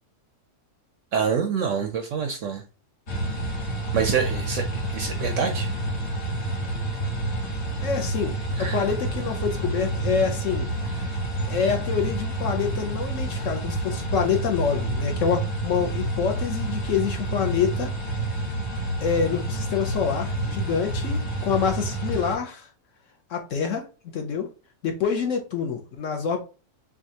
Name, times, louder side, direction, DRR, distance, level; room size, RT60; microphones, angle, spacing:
voice 1, 1.1-2.6 3.9-5.7 8.6-8.8, right 6 dB, 70° right, 0.7 m, -26 dB
sound 1, 3.1-22.4, right 1 dB, 45° left, 1.3 m, -28 dB
voice 2, 7.8-10.7 11.5-17.9 19.0-22.7 23.3-23.8 24.1-24.5 24.8-26.4, left 6 dB, 65° left, 0.9 m, -26 dB
6.3 x 2.3 x 2.8 m
omnidirectional pair, 1.7 m